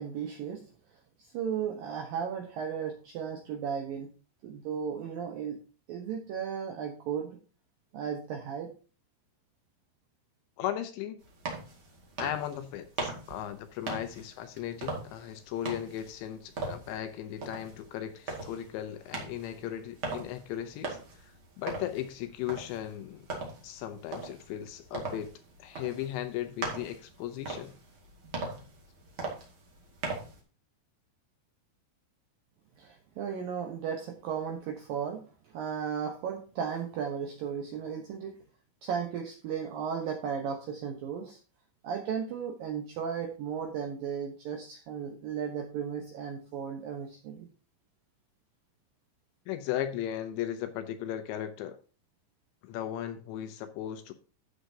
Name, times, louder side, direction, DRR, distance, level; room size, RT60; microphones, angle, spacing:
voice 1, 0.0-4.1 4.4-5.6 5.9-7.4 7.9-8.7 32.8-38.4 38.8-41.4 41.8-47.5, right 7 dB, 75° right, 2.1 m, -35 dB
voice 2, 10.6-11.2 12.2-23.2 23.6-25.3 25.6-27.7 49.5-51.8 52.6-54.1, left 11 dB, 80° left, 2.9 m, -37 dB
sound 1, 11.2-30.4, right 3 dB, 45° right, 1.8 m, -40 dB
13.0 x 7.8 x 2.8 m
omnidirectional pair, 5.6 m